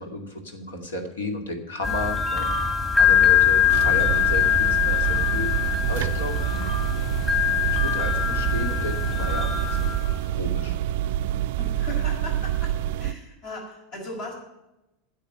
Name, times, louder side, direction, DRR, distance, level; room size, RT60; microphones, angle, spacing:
voice 1, 0.0-6.6 7.4-9.9 10.3-10.8, left 1 dB, 75° left, 5 dB, 2.3 m, -33 dB
sound 1, 1.8-10.2, left 8 dB, 20° left, 2.4 m, -22 dB
voice 2, 3.6-3.9 11.6-12.7 13.0-14.3, left 1 dB, 55° left, 0 dB, 5.8 m, -37 dB
sound 2, 3.7-13.1, right 12 dB, 60° right, 0.3 m, -27 dB
10.0 x 7.6 x 9.3 m, 0.94 s
figure-of-eight pair, 85°, 0 cm